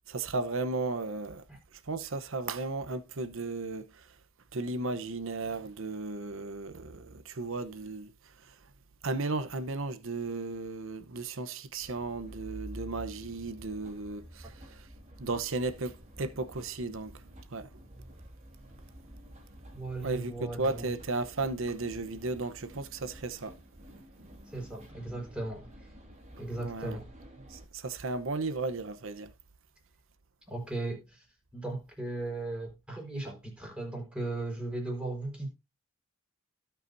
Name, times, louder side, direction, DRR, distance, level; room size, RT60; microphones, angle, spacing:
voice 1, 0.1-1.4 1.7-4.2 4.5-8.6 9.0-14.9 15.2-17.2 17.5-17.7 20.0-23.5 23.8-23.9 26.5-27.0 27.4-29.3, right 3 dB, 65° right, 0.9 m, -35 dB
sound 1, 11.8-27.7, equal, 35° right, 3.2 m, -50 dB
voice 2, 19.7-20.9 24.4-25.9 26.4-27.1 30.5-31.3 31.5-35.5, right 2 dB, 5° right, 4.4 m, -37 dB
17.0 x 5.9 x 2.7 m
head